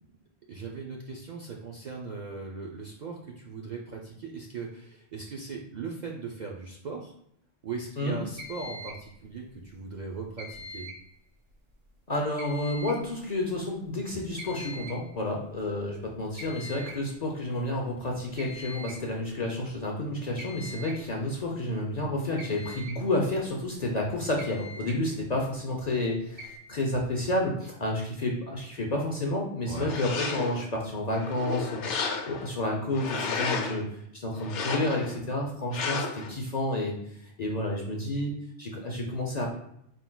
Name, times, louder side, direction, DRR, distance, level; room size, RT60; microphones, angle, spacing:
voice 1, 0.5-7.1 7.6-10.9 29.7-30.0, right 4 dB, 55° right, -1 dB, 0.5 m, -39 dB
sound 1, 8.4-9.1 10.4-11.1 12.4-13.1 14.4-15.1 16.4-17.1 18.4-19.1 20.4-21.1 22.4-23.0 24.0-24.1 24.4-25.0 26.4-26.6, left 1 dB, 85° right, 1.3 m, -42 dB
voice 2, 12.1-31.8 32.3-33.8 34.1-37.0 37.4-38.3 38.6-39.5, left 1 dB, 45° left, 0 dB, 0.6 m, -30 dB
sound 2, 29.7-30.7 31.2-32.5 32.9-33.8 34.4-35.2 35.7-36.3, left 5 dB, 80° left, 0.9 m, -32 dB
4.5 x 3.8 x 2.2 m, 0.72 s
omnidirectional pair, 1.2 m